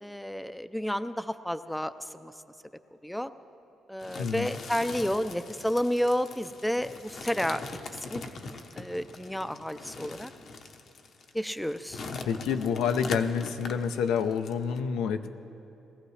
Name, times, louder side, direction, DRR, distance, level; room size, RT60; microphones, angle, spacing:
voice 1, 0.0-1.9 2.2-2.3 3.0-3.3 3.9-7.6 8.1-10.3 11.3-12.0, equal, 5° left, 12 dB, 0.4 m, -31 dB
sound 1, 4.0-14.8, left 4 dB, 60° left, 0.9 m, -42 dB
voice 2, 4.2-4.6 12.2-15.3, left 7 dB, 90° left, 8 dB, 0.6 m, -28 dB
20.0 x 14.5 x 3.2 m, 2.9 s
cardioid pair, 90°, 0 cm